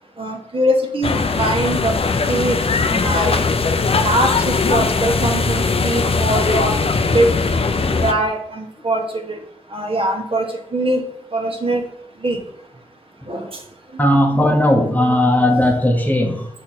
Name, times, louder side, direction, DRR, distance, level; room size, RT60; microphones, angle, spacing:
voice 1, 0.2-1.9 2.3-2.6 2.9-3.4 4.0-6.8 7.1-7.3 8.0-9.4 9.7-10.4 10.7-11.0 11.3-11.8 12.2-12.4 13.3-13.5, right 1 dB, 45° right, 2 dB, 1.4 m, -21 dB
sound 1, 1.0-8.1, left 4 dB, 45° left, 0.7 m, -19 dB
voice 2, 7.7-8.1 13.2-13.3 14.0-16.5, left 1 dB, 10° left, 2 dB, 1.1 m, -17 dB
5.9 x 4.3 x 4.2 m, 0.71 s
cardioid pair, 50°, 13 cm